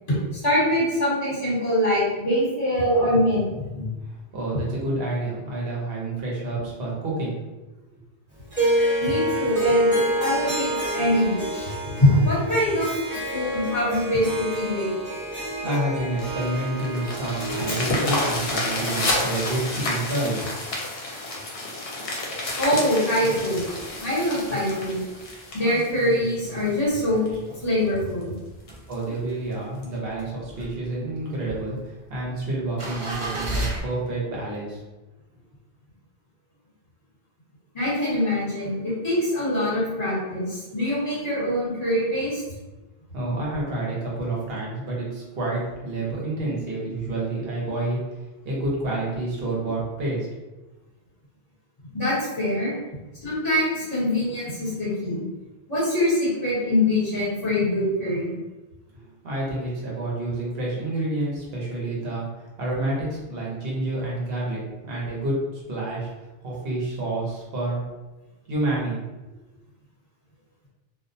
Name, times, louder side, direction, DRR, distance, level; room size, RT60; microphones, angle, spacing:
voice 1, 0.1-3.9 9.0-12.9 13.3-14.9 17.7-17.8 22.5-23.7 24.0-25.0 25.5-27.3 27.6-28.4 37.7-42.4 51.9-52.7 53.2-55.2 55.7-58.3, left 1 dB, 40° left, -9 dB, 1.1 m, -24 dB
voice 2, 3.9-7.4 15.6-20.6 28.9-34.8 43.1-50.3 58.9-66.1 66.4-67.8 68.5-69.0, right 2 dB, 70° right, -4 dB, 1.0 m, -29 dB
Harp, 8.5-19.8, right 1 dB, 10° right, 1.0 m, -28 dB
sound 1, 16.2-26.7 27.3-27.4 27.8-27.9 28.2-28.3 28.7-28.9 29.8-29.9, left 2 dB, 75° left, 0.8 m, -30 dB
sound 2, 23.4-24.0 24.4-24.5 24.7-28.1 28.5-29.5 29.9-33.8, right 1 dB, 45° right, 0.4 m, -35 dB
2.4 x 2.1 x 2.5 m, 1.1 s
omnidirectional pair, 1.0 m